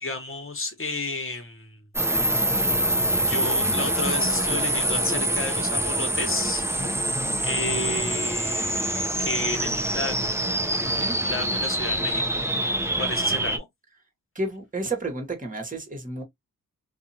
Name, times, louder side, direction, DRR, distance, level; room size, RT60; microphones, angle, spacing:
voice 1, 0.0-1.8 3.2-6.7 7.4-10.4 11.0-12.2 13.0-13.7, left 2 dB, 35° left, 1.3 m, -32 dB
sound 1, 1.9-13.6, right 1 dB, 5° right, 0.7 m, -25 dB
voice 2, 6.8-7.4 10.8-11.2 14.3-16.2, right 2 dB, 20° right, 1.3 m, -32 dB
2.7 x 2.4 x 2.7 m
cardioid pair, 45°, 35 cm